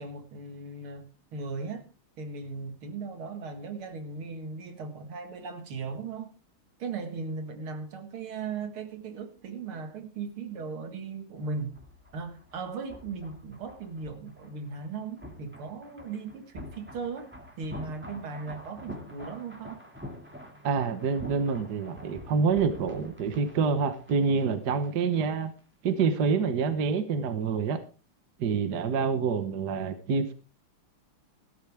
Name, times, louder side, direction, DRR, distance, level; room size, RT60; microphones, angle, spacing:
voice 1, 0.0-1.9 2.2-6.3 6.8-11.8 12.1-19.8, right 4 dB, 75° right, 2.6 m, -38 dB
sound 1, 11.4-25.2 25.4-25.6, left 1 dB, 5° right, 2.1 m, -47 dB
voice 2, 20.6-25.5 25.8-27.8 28.4-30.3, right 5 dB, 55° right, 1.6 m, -27 dB
15.5 x 13.0 x 3.5 m
omnidirectional pair, 2.4 m